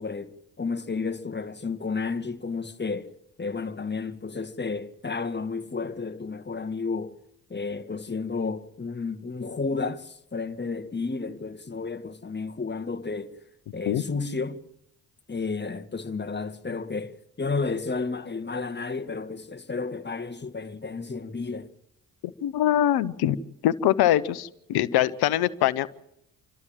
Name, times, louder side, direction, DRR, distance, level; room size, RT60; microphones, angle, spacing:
voice 1, 0.0-3.1 3.4-7.2 7.5-13.4 13.7-14.6 15.3-21.7, left 4 dB, 30° left, 1.9 m, -32 dB
voice 2, 22.4-23.4 23.6-25.9, left 12 dB, 75° left, 1.0 m, -23 dB
29.0 x 12.5 x 7.5 m
supercardioid pair, 50°, 38 cm